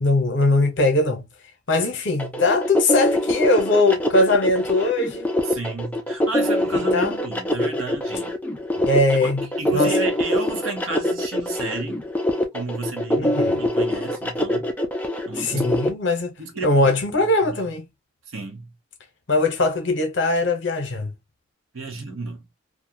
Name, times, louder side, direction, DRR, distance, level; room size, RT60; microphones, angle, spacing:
voice 1, 0.0-1.3 1.7-5.3 6.7-7.2 8.8-9.4 9.7-9.9 13.2-13.6 15.4-16.3 16.6-17.8 19.3-21.1, left 2 dB, 55° left, 0.8 m, -21 dB
sound 1, 2.2-15.9, left 1 dB, 5° left, 0.3 m, -23 dB
voice 2, 5.4-8.3 9.2-9.3 9.6-12.0 12.5-14.7 15.3-15.7 16.4-17.6 18.3-18.7 21.7-22.4, right 3 dB, 75° right, 0.8 m, -32 dB
2.5 x 2.3 x 2.6 m
head